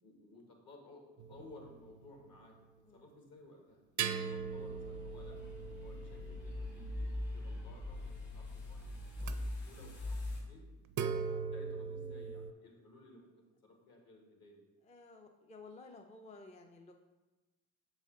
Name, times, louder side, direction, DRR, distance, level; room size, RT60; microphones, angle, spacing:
voice 1, 0.0-2.5 2.9-5.4 5.8-10.6 11.0-14.6, left 2 dB, 55° left, 1 dB, 1.6 m, -58 dB
sound 1, 1.2-2.4 4.0-7.7 9.2-9.3 10.9-12.5, right 6 dB, 45° right, 0.5 m, -40 dB
sound 2, 4.4-10.4, left 1 dB, 80° left, 1.6 m, -42 dB
voice 2, 14.8-16.9, left 3 dB, 15° left, 3 dB, 0.4 m, -54 dB
6.9 x 4.1 x 3.7 m, 1.1 s
supercardioid pair, 70°, 43 cm